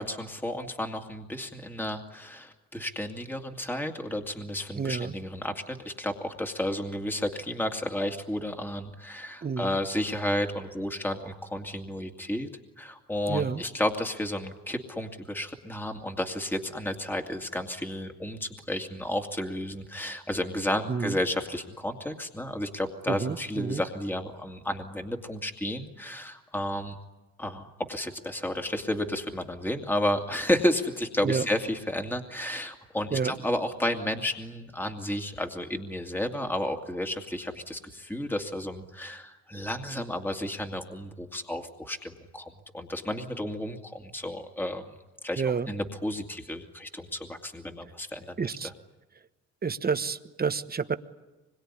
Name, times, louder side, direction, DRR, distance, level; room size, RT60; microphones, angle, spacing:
voice 1, 0.0-12.5 12.8-27.0 27.4-44.8 45.2-48.4 48.6-48.7, left 1 dB, 5° left, 4 dB, 2.3 m, -32 dB
voice 2, 4.8-5.1 9.4-9.8 13.3-13.6 20.9-21.2 23.1-23.8 31.2-31.5 33.1-33.4 45.4-45.7 48.4-48.7 49.6-51.0, right 5 dB, 30° right, 11 dB, 1.2 m, -29 dB
25.0 x 22.5 x 9.9 m, 1.1 s
cardioid pair, 90°, 30 cm